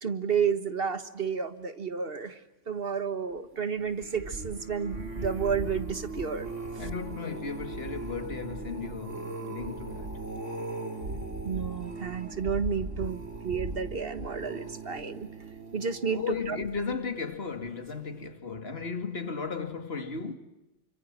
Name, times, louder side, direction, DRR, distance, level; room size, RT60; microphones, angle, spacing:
voice 1, 0.0-2.4 2.7-6.5 11.4-15.3 15.7-16.6, right 6 dB, 50° right, 1.7 m, -31 dB
sound 1, 3.8-17.1 17.7-18.0 18.2-18.3, right 2 dB, 80° right, 3.7 m, -38 dB
voice 2, 6.8-10.2 16.1-20.3, left 5 dB, 55° left, 2.5 m, -35 dB
29.0 x 25.0 x 7.4 m
omnidirectional pair, 1.2 m